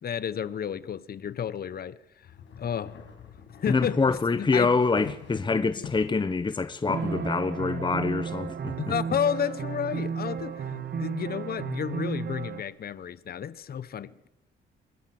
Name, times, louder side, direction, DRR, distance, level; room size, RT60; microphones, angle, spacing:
voice 1, 0.0-2.0 2.6-2.9 3.6-4.8 6.9-7.0 8.8-14.3, left 8 dB, 50° left, 1.1 m, -31 dB
sound 1, 2.2-6.3, left 7 dB, 70° left, 5.6 m, -45 dB
voice 2, 3.7-8.7, left 4 dB, 25° left, 1.1 m, -25 dB
sound 2, 6.9-12.6, right 6 dB, 55° right, 2.4 m, -33 dB
25.0 x 21.0 x 7.8 m
cardioid pair, 90°, 20 cm